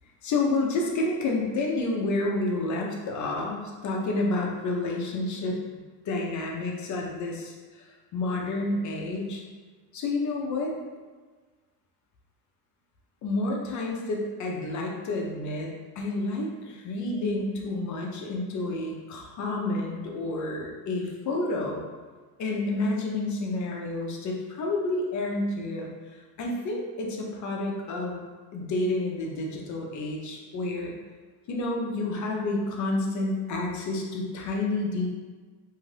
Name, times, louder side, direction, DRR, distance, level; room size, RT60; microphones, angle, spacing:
voice 1, 0.2-5.6 6.0-7.9 8.1-9.4 9.9-10.7 13.2-21.8 22.4-25.9 26.4-28.2 28.5-30.9 31.5-35.1, left 2 dB, 40° left, 0 dB, 0.6 m, -29 dB
2.7 x 2.4 x 3.2 m, 1.4 s
supercardioid pair, 120°, 46 cm